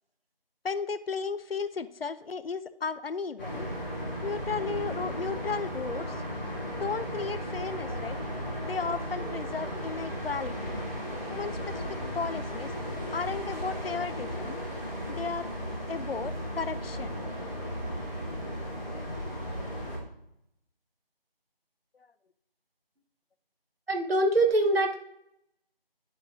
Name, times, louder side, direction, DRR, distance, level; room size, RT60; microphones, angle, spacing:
voice 1, 0.6-3.7 4.2-6.2 6.8-8.2 8.6-10.8 11.3-12.7 13.1-14.6 15.1-15.5 15.9-17.2, left 5 dB, 75° left, 14 dB, 0.6 m, -34 dB
sound 1, 3.4-20.0, equal, 10° left, 1.9 m, -35 dB
voice 2, 23.9-25.0, right 2 dB, 80° right, 3 dB, 1.6 m, -24 dB
10.5 x 5.3 x 2.7 m, 0.78 s
figure-of-eight pair, 175°, 29 cm